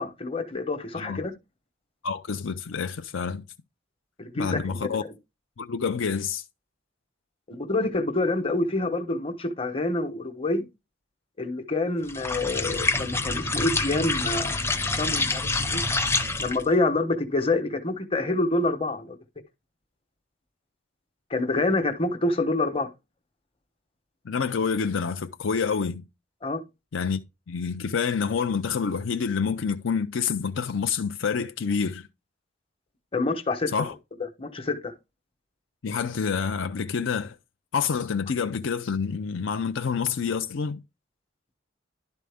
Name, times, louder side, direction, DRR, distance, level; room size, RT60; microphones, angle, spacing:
voice 1, 0.0-1.3 4.2-5.1 7.5-10.6 11.4-14.6 14.9-15.8 16.4-19.2 21.3-22.9 26.4-26.6 33.1-33.7 34.4-34.9, left 2 dB, 30° left, 1.1 m, -27 dB
voice 2, 2.0-3.4 4.4-5.0 5.6-6.4 24.2-26.1 26.9-27.2 27.5-32.1 33.7-33.9 35.8-37.4 37.7-40.8, left 6 dB, 70° left, 0.5 m, -27 dB
sound 1, 12.1-16.7, left 3 dB, 15° left, 0.7 m, -27 dB
11.5 x 4.2 x 3.5 m
head